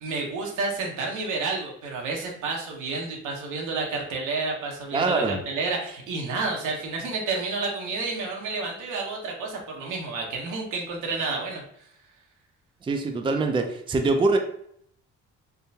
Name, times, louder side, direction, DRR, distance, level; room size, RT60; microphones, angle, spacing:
voice 1, 0.0-11.9, right 3 dB, 85° right, 0 dB, 0.9 m, -30 dB
voice 2, 4.9-5.4 12.8-14.4, right 3 dB, 15° right, 5 dB, 0.4 m, -23 dB
3.6 x 2.2 x 2.7 m, 0.68 s
cardioid pair, 90°, 30 cm